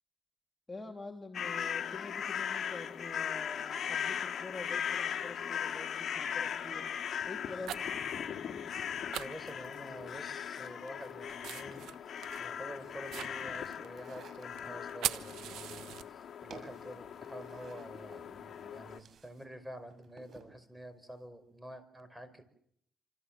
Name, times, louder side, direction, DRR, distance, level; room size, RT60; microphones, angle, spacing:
voice 1, 0.7-6.9 7.3-7.8, left 3 dB, 15° left, 2 dB, 2.9 m, -46 dB
sound 1, 1.3-19.0, left 8 dB, 55° left, 2.0 m, -39 dB
sound 2, 4.5-4.6 5.4-5.7 6.2-6.5 7.2-8.0 8.3-8.4 8.7-8.8 9.1-10.1 10.5-16.5 16.8-19.3, right 11 dB, 85° right, 1.1 m, -42 dB
voice 2, 9.2-11.8 12.4-22.4, equal, 5° right, 11 dB, 5.2 m, -48 dB
sound 3, 12.1-19.5 19.7-20.6, right 6 dB, 60° right, 7.0 m, -57 dB
27.5 x 26.5 x 7.6 m, 0.69 s
cardioid pair, 90°, 0 cm